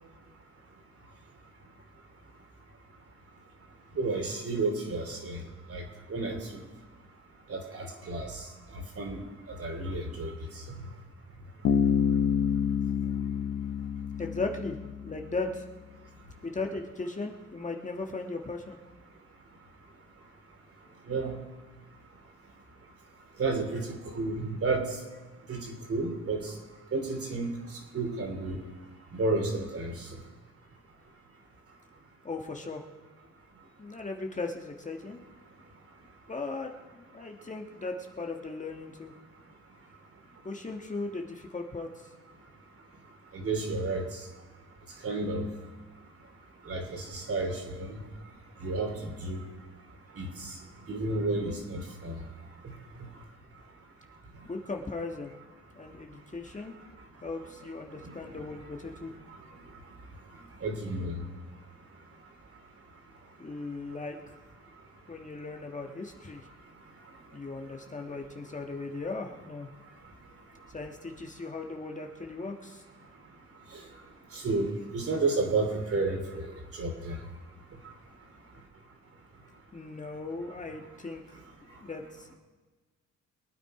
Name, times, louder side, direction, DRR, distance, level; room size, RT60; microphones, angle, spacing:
voice 1, 4.0-5.4 5.7-5.8 6.1-6.4 7.5-8.3 9.0-9.2 9.6-10.3 21.1-21.3 23.4-23.8 24.2-24.8 25.5-25.6 25.9-26.4 26.9-27.5 27.9-28.6 29.1-29.9 43.3-44.0 45.0-45.4 46.7-47.5 47.8-47.9 48.6-48.9 49.2-49.4 50.2-50.3 50.9-52.1 60.6-61.2 74.4-74.7 74.9-76.5 76.8-77.1, right 3 dB, 50° right, 3 dB, 3.1 m, -30 dB
Bass guitar, 11.6-15.3, left 7 dB, 55° left, 0.8 m, -28 dB
voice 2, 14.2-14.8 15.0-15.6 16.4-18.8 32.2-32.8 33.8-35.2 36.3-39.1 40.4-41.9 54.4-55.3 55.7-56.7 57.2-59.1 63.4-64.2 65.1-66.4 67.3-69.7 70.7-72.8 79.7-81.4 81.8-82.3, left 3 dB, 25° left, 2 dB, 1.5 m, -37 dB
22.5 x 9.1 x 4.9 m, 1.3 s
cardioid pair, 90°, 30 cm